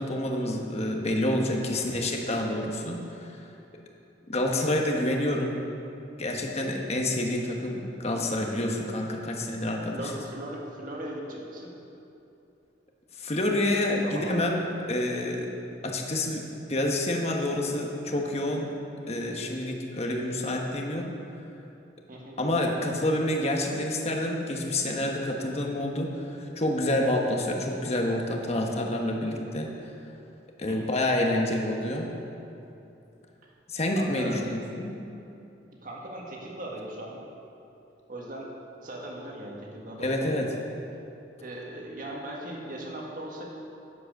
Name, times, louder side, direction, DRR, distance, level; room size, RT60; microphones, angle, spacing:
voice 1, 0.0-3.5 4.3-5.5 6.2-10.1 13.2-14.6 14.9-15.5 15.8-18.7 19.1-21.1 22.4-29.7 30.6-32.1 33.7-35.0 40.0-40.5, left 1 dB, 35° left, 1 dB, 1.2 m, -28 dB
voice 2, 1.7-2.0 9.9-11.7 14.0-14.4 22.1-22.4 30.7-31.0 33.4-33.5 34.0-34.6 35.8-37.2 38.1-38.5 38.8-40.4 41.4-43.4, right 1 dB, 50° right, -2 dB, 1.7 m, -39 dB
9.8 x 7.7 x 6.6 m, 2.9 s
head